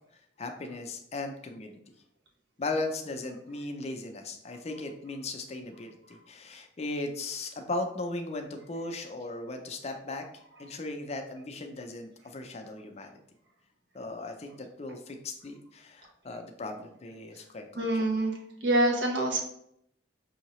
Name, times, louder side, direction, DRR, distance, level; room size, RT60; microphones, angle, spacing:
voice 1, 0.4-1.8 2.6-10.2 10.6-13.2 13.9-18.1, left 2 dB, 35° left, 5 dB, 0.4 m, -37 dB
voice 2, 17.8-19.4, right 1 dB, 70° right, 1 dB, 1.0 m, -26 dB
5.6 x 2.7 x 3.0 m, 0.75 s
head